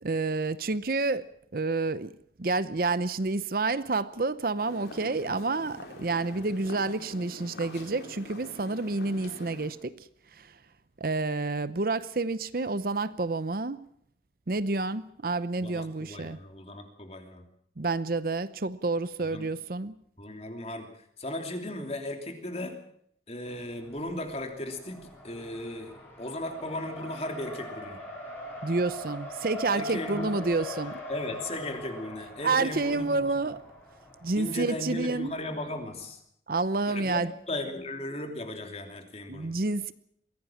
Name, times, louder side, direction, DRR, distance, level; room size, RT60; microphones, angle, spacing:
voice 1, 0.0-9.9 10.4-10.5 11.0-13.9 14.5-16.4 17.8-19.9 28.6-31.0 32.4-33.6 34.2-35.3 36.5-37.3 39.3-39.9, right 3 dB, 55° right, 15 dB, 0.7 m, -29 dB
sound 1, 4.6-9.7, left 1 dB, 75° left, 4.3 m, -45 dB
voice 2, 15.6-17.4 19.3-19.5 20.2-20.9 21.2-22.8 23.3-28.0 29.7-30.5 31.1-33.4 34.4-36.2 36.9-39.5, left 1 dB, 35° left, 4 dB, 3.1 m, -36 dB
Race car auto racing, 23.5-36.1, left 1 dB, 10° left, 5.5 m, -42 dB
23.0 x 16.5 x 7.3 m, 0.69 s
head